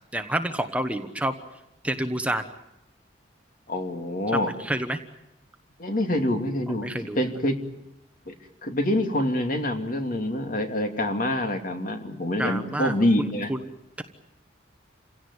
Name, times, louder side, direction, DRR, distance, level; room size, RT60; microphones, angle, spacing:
voice 1, 0.1-1.3 1.8-2.4 4.3-5.0 6.8-7.2 12.4-13.6, right 1 dB, 5° right, 7 dB, 1.1 m, -28 dB
voice 2, 3.7-4.5 5.8-7.6 8.3-8.4 8.6-13.5, left 1 dB, 45° left, 5 dB, 2.6 m, -26 dB
28.0 x 17.5 x 9.7 m, 0.87 s
head